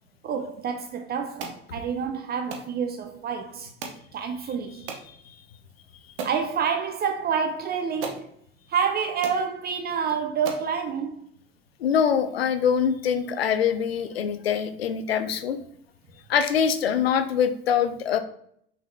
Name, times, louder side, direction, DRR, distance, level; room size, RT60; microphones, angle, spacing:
voice 1, 0.2-3.7 4.1-4.9 6.2-8.3 8.7-11.3, right 6 dB, 30° right, 0.5 m, -28 dB
sound 1, 1.4-1.6 2.5-2.7 3.8-4.1 4.9-5.1 5.7-5.8 6.2-6.4 7.5-7.6 8.0-8.3 8.9-9.0 9.2-9.4 10.0-10.1 10.5-10.7, right 5 dB, 65° right, 0.9 m, -35 dB
voice 2, 11.8-15.6 16.3-18.2, left 7 dB, 80° left, 0.5 m, -24 dB
5.8 x 4.0 x 2.3 m
figure-of-eight pair, 70°, 30 cm